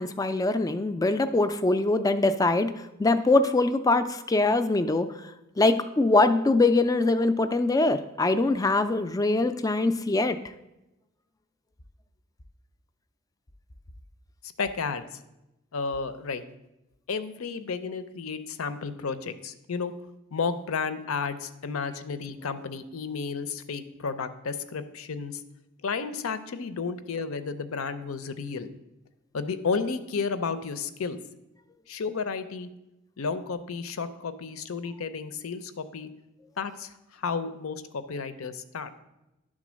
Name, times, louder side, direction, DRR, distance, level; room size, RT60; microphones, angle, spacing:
voice 1, 0.0-2.7 3.0-5.1 5.6-10.4, left 2 dB, 15° left, 10 dB, 0.3 m, -23 dB
voice 2, 14.6-15.2 15.7-16.4 17.1-19.9 20.3-25.4 25.8-28.7 29.3-31.2 31.9-32.7 33.2-36.1 36.6-38.9, left 5 dB, 80° left, 11 dB, 0.6 m, -32 dB
10.5 x 3.7 x 6.2 m, 0.95 s
head